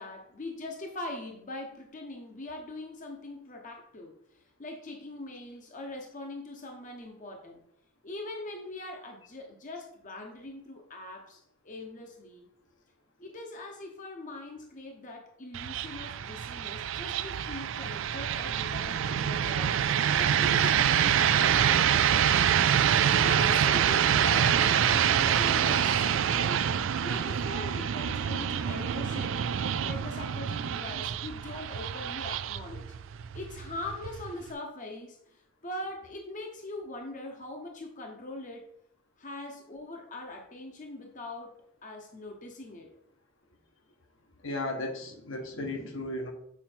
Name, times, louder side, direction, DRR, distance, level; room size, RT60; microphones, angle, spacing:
voice 1, 0.0-7.6 8.0-12.5 13.2-22.6 23.2-26.7 27.0-29.5 29.8-32.9 33.3-38.6 39.2-41.5 41.8-42.9, left 2 dB, 40° left, 2 dB, 0.9 m, -42 dB
sound 1, 15.5-34.5, right 9 dB, 70° right, 0.4 m, -26 dB
voice 2, 44.4-46.3, left 1 dB, 70° left, 3 dB, 1.2 m, -35 dB
7.3 x 4.5 x 4.4 m, 0.72 s
head